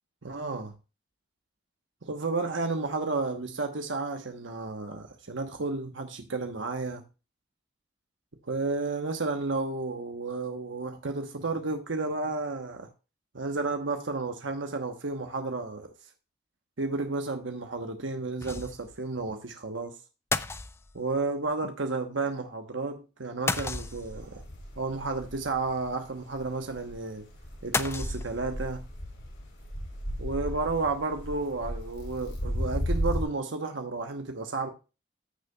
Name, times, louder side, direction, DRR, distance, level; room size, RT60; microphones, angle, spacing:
voice 1, 0.2-0.7 2.0-7.0 8.4-12.9 13.3-15.9 16.8-19.9 20.9-24.4 24.8-27.3 27.6-28.8 30.2-34.7, right 3 dB, 90° right, 1.1 m, -32 dB
sound 1, 18.4-19.0 19.3-19.4 20.3-21.2 23.5-24.3 27.7-28.7, left 3 dB, 15° left, 0.3 m, -32 dB
sound 2, 23.7-33.2, equal, 90° left, 4.7 m, -35 dB
14.5 x 6.7 x 2.3 m
head